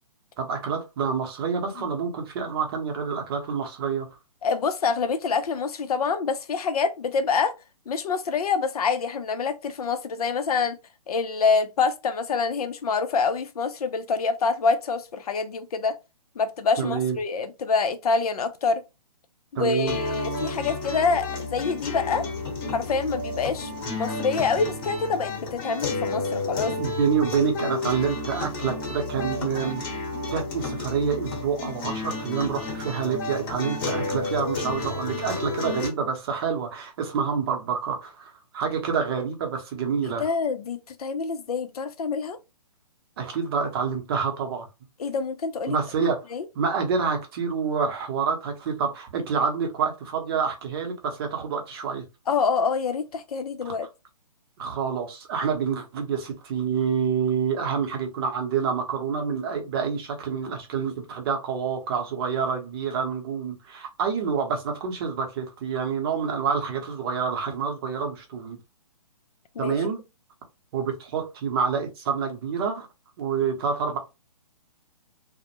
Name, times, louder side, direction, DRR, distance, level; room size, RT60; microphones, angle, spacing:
voice 1, 0.4-4.1 16.8-17.2 19.6-20.0 26.8-29.8 30.3-40.3 43.2-44.7 45.7-46.2 46.5-52.0 54.6-68.6 69.6-70.0 70.7-72.9 73.2-74.0, right 6 dB, 40° right, 0.7 m, -27 dB
voice 2, 4.4-7.5 7.9-10.8 11.1-15.9 16.4-18.8 19.5-22.2 22.7-26.7 40.2-42.4 45.0-46.4 52.3-53.9 69.6-69.8, left 5 dB, 70° left, 0.5 m, -26 dB
sound 1, 19.9-35.9, left 3 dB, 35° left, 0.9 m, -31 dB
2.1 x 2.1 x 2.8 m
hypercardioid pair, 140°, 20 cm